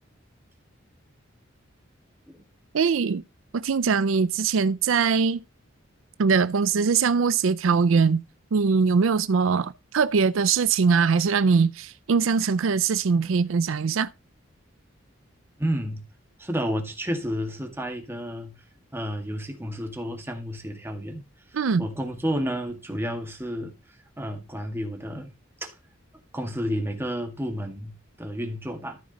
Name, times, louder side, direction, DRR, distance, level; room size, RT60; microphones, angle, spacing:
voice 1, 2.7-3.2 3.5-5.4 6.2-8.2 8.5-14.1 21.5-21.9, right 5 dB, 75° right, 0.4 m, -22 dB
voice 2, 15.6-16.0 16.4-18.6 18.9-21.2 21.8-23.7 24.2-25.3 25.6-25.8 26.3-29.0, equal, 10° right, 1.9 m, -31 dB
13.5 x 5.0 x 4.1 m
head